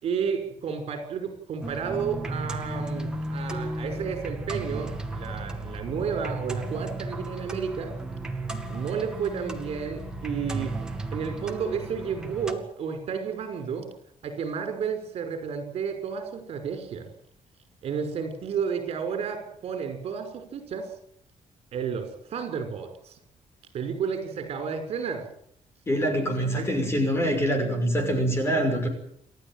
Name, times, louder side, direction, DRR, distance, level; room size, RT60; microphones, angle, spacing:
voice 1, 0.0-7.9 8.7-10.7 11.1-13.9 14.2-17.1 17.8-20.9 21.7-23.2 23.7-25.3 26.4-26.7, right 6 dB, 55° right, 7 dB, 5.8 m, -32 dB
sound 1, 1.6-12.5, right 2 dB, 5° right, 2.2 m, -34 dB
voice 2, 25.9-28.9, equal, 20° left, 5 dB, 5.8 m, -25 dB
29.0 x 13.5 x 9.2 m, 0.69 s
cardioid pair, 180°, 12 cm